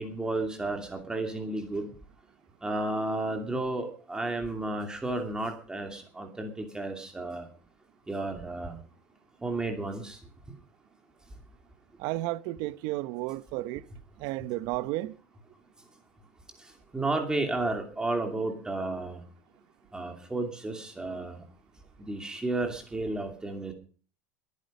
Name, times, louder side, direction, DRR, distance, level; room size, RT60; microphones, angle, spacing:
voice 1, 0.0-1.9 2.6-7.5 8.1-8.8 9.4-10.2 16.9-19.2 19.9-21.4 22.0-23.7, right 2 dB, 10° right, 2.7 m, -32 dB
voice 2, 12.0-13.8 14.2-15.2, right 17 dB, 55° right, 0.8 m, -32 dB
21.0 x 9.8 x 5.3 m
supercardioid pair, 145°, 9 cm